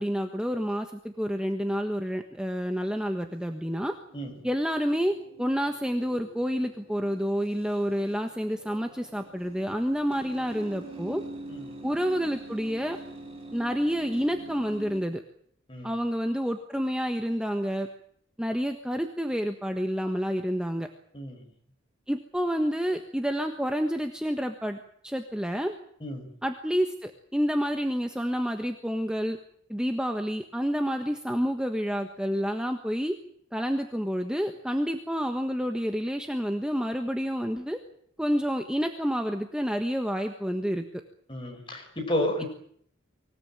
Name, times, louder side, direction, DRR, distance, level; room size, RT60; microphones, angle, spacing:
voice 1, 0.0-3.9 4.4-11.2 11.8-13.0 13.5-15.2 15.8-17.9 18.4-20.9 22.1-25.8 26.4-29.4 29.7-33.1 33.5-37.8 38.2-40.8, equal, 5° right, 5 dB, 1.3 m, -29 dB
sound 1, 3.4-15.0, right 1 dB, 25° right, 6.0 m, -45 dB
voice 2, 41.3-42.4, left 1 dB, 25° left, 3 dB, 5.7 m, -31 dB
25.0 x 17.0 x 8.9 m, 0.64 s
head